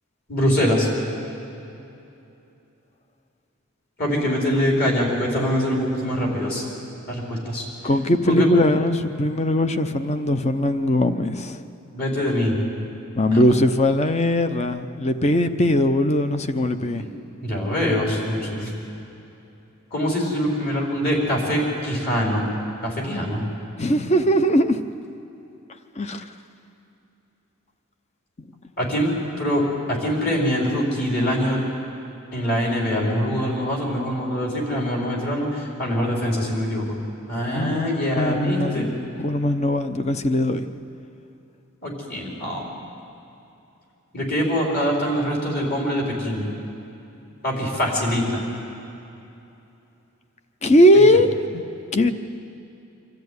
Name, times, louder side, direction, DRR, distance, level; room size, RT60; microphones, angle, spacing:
voice 1, 0.3-0.9 4.0-6.6 7.1-7.6 8.3-8.5 11.9-12.6 13.3-13.4 17.0-18.7 19.9-22.4 22.8-23.4 28.8-29.1 29.4-31.6 32.3-37.0 37.3-38.9 41.8-42.6 44.1-46.4 47.4-48.4, equal, 50° left, -2 dB, 4.7 m, -24 dB
voice 2, 7.8-11.6 13.1-17.0 23.8-24.8 26.0-26.2 37.5-40.7 50.6-51.6 51.9-52.1, left 1 dB, 30° left, 9 dB, 0.8 m, -20 dB
25.0 x 13.0 x 9.5 m, 2.8 s
head